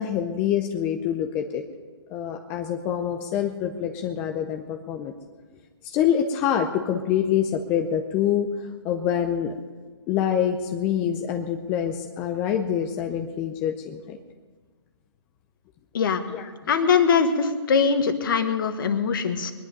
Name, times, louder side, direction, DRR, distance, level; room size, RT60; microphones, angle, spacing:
voice 1, 0.0-1.6 2.1-5.1 5.9-8.5 8.8-9.5 10.1-14.2 16.3-16.5, left 9 dB, 15° left, 5 dB, 0.5 m, -26 dB
voice 2, 16.7-19.5, left 6 dB, 50° left, 9 dB, 1.4 m, -22 dB
21.0 x 11.0 x 5.3 m, 1.5 s
hypercardioid pair, 160°, 15 cm